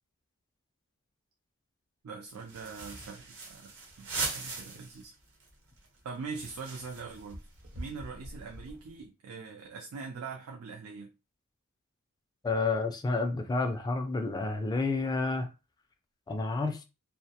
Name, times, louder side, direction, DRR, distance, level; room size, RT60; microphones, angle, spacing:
voice 1, 2.0-5.1 6.0-7.5 7.8-11.1, right 4 dB, 75° right, 0.4 m, -42 dB
sound 1, 2.3-5.1 5.4-5.5 5.8-8.9, right 3 dB, 60° right, 0.9 m, -40 dB
voice 2, 12.4-15.5 16.3-16.8, left 3 dB, 20° left, 0.3 m, -30 dB
2.2 x 2.1 x 2.7 m
head